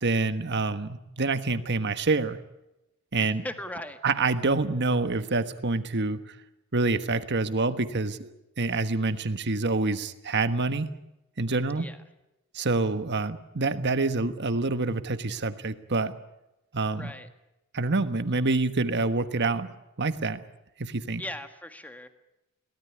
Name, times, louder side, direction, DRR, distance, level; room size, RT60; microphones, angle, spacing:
voice 1, 0.0-2.4 3.1-3.4 4.0-6.2 6.7-10.9 11.4-11.9 12.5-16.1 16.7-17.1 17.7-19.7 20.0-20.4 20.8-21.2, right 3 dB, 50° right, 11 dB, 1.4 m, -27 dB
voice 2, 3.2-4.0 11.7-12.0 17.0-17.3 21.2-22.1, left 1 dB, 5° left, 8 dB, 1.7 m, -38 dB
23.0 x 18.0 x 9.7 m, 0.93 s
head